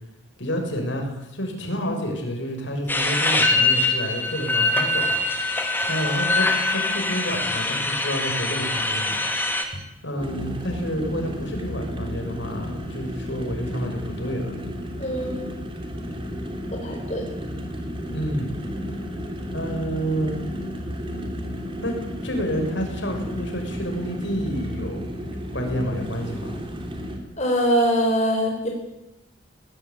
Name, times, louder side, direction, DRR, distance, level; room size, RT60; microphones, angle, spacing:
voice 1, 0.4-9.2 10.0-14.5 18.1-18.6 19.5-20.4 21.8-22.0 22.2-25.1 25.5-26.6, equal, 60° left, 3 dB, 6.0 m, -29 dB
sound 1, 2.9-9.6, left 2 dB, 10° left, 2.4 m, -23 dB
sound 2, 10.2-27.2, equal, 25° right, 3.4 m, -33 dB
voice 2, 15.0-15.5 16.8-17.2 27.4-28.7, equal, 35° left, 0 dB, 4.4 m, -23 dB
20.5 x 18.5 x 9.5 m, 0.96 s
head